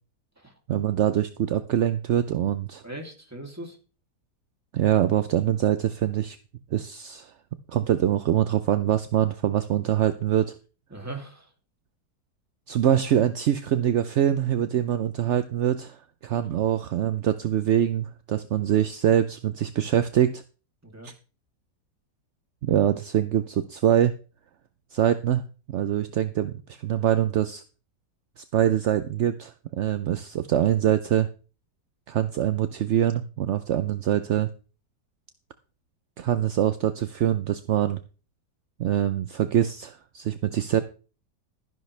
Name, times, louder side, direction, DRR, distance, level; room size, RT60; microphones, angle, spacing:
voice 1, 0.7-2.8 4.7-6.4 6.7-7.3 7.7-10.6 12.7-20.4 21.0-21.1 22.6-24.2 24.9-27.6 28.4-31.3 32.1-34.5 36.2-38.0 38.8-40.8, right 10 dB, 65° right, 11 dB, 0.7 m, -24 dB
voice 2, 2.8-3.8 10.9-11.5 16.3-16.5 20.8-21.1, right 2 dB, 10° right, 2 dB, 2.6 m, -39 dB
13.0 x 11.0 x 3.3 m, 0.35 s
omnidirectional pair, 1.8 m